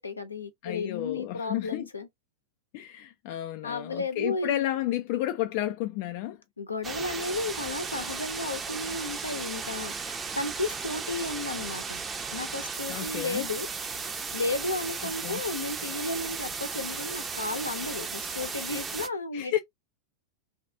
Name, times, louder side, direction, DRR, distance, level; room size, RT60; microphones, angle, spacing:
voice 1, 0.0-2.1 3.6-4.6 6.6-12.0 12.3-13.7 14.3-19.6, left 3 dB, 80° left, 0.7 m, -33 dB
voice 2, 0.6-1.9 2.7-6.4 12.9-13.4 15.2-15.4 19.3-19.6, left 13 dB, 45° left, 0.3 m, -31 dB
sound 1, 6.8-19.1, right 5 dB, 20° right, 0.5 m, -35 dB
3.4 x 2.3 x 2.7 m
figure-of-eight pair, 90°, 0 cm